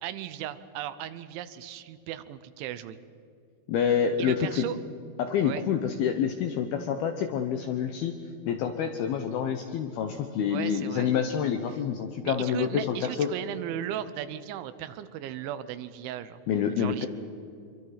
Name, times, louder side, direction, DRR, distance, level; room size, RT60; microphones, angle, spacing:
voice 1, 0.0-3.0 4.2-4.8 5.4-5.7 10.5-11.1 12.2-16.4 16.7-17.1, right 11 dB, 80° right, 13 dB, 3.0 m, -36 dB
voice 2, 3.7-4.7 5.2-8.2 8.5-13.3 16.5-17.1, left 8 dB, 75° left, 6 dB, 2.3 m, -27 dB
26.0 x 24.0 x 5.8 m, 2.4 s
omnidirectional pair, 5.6 m